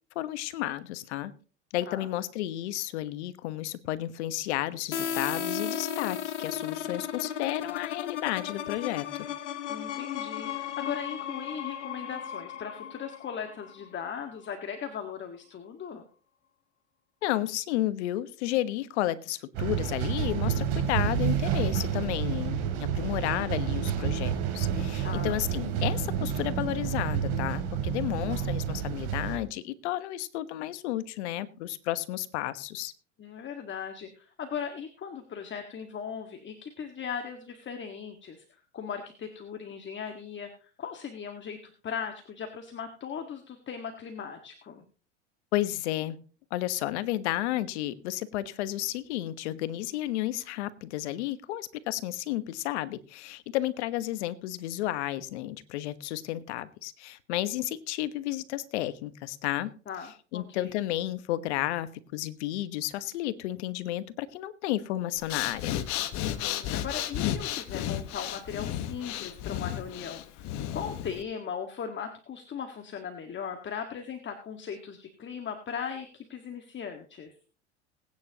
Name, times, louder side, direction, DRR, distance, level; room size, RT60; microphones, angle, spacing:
voice 1, 0.1-1.3 1.7-9.1 17.2-32.9 45.5-46.2 46.5-59.7 60.3-65.7, left 15 dB, 75° left, 14 dB, 1.3 m, -32 dB
sound 1, 4.9-14.5, left 8 dB, 90° left, 1.4 m, -35 dB
voice 2, 9.7-16.0 25.0-25.4 33.2-38.4 38.7-44.8 59.9-60.7 66.2-77.3, left 7 dB, 35° left, 5 dB, 1.8 m, -38 dB
sound 2, 19.5-29.4, right 8 dB, 65° right, 3.2 m, -29 dB
Breathing, 65.2-71.2, left 11 dB, 55° left, 1.4 m, -33 dB
21.0 x 9.6 x 2.9 m, 0.39 s
hypercardioid pair, 85°, 35 cm